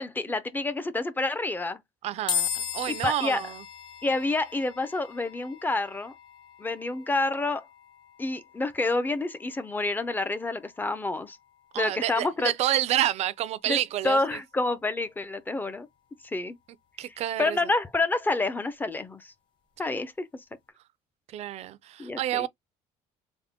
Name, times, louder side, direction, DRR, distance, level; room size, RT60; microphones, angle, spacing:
voice 1, 0.0-1.8 2.9-3.4 4.0-6.1 6.6-7.7 8.2-11.4 11.8-12.5 13.7-13.8 14.0-15.9 16.2-16.6 17.4-19.3 19.8-20.4 22.0-22.5, left 2 dB, 15° left, 0.5 m, -28 dB
voice 2, 2.0-3.6 11.7-14.4 17.0-17.7 21.3-22.5, right 12 dB, 50° right, 0.4 m, -29 dB
sound 1, 2.3-15.6, left 8 dB, 35° left, 1.0 m, -40 dB
3.6 x 2.1 x 3.5 m
cardioid pair, 135°, 14 cm